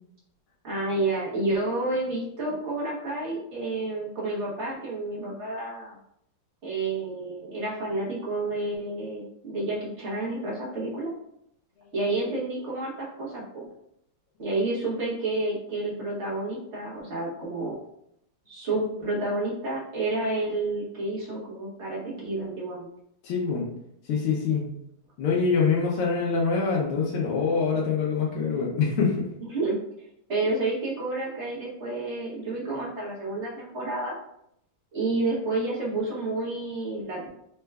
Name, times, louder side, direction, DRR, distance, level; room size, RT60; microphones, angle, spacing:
voice 1, 0.6-6.0 6.6-11.1 11.9-13.6 14.4-17.8 18.5-22.9 29.4-29.8 30.3-34.1 34.9-37.3, right 2 dB, 55° right, -6 dB, 0.8 m, -30 dB
voice 2, 23.2-23.6 24.0-24.7 25.2-29.3, left 5 dB, 85° left, -3 dB, 1.6 m, -25 dB
4.3 x 2.3 x 3.2 m, 0.75 s
omnidirectional pair, 2.4 m